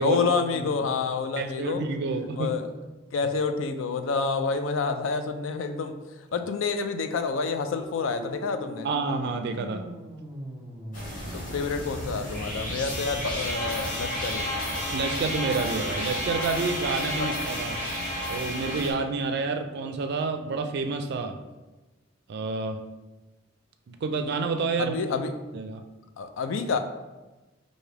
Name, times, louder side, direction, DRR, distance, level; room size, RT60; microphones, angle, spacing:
voice 1, 0.0-1.8 2.4-2.7 3.1-5.9 6.3-8.9 11.3-14.5 17.2-17.3 24.8-25.3 26.2-26.8, left 4 dB, 75° left, 8 dB, 0.4 m, -28 dB
voice 2, 1.4-2.6 8.8-9.8 14.9-17.8 18.3-21.4 22.3-22.8 23.9-25.0 25.5-25.8, right 4 dB, 60° right, 7 dB, 0.4 m, -29 dB
sound 1, 6.5-13.6, equal, 20° right, 1.1 m, -43 dB
sound 2, 10.9-18.9, left 1 dB, 45° left, 1.1 m, -31 dB
4.8 x 2.6 x 3.2 m, 1.1 s
head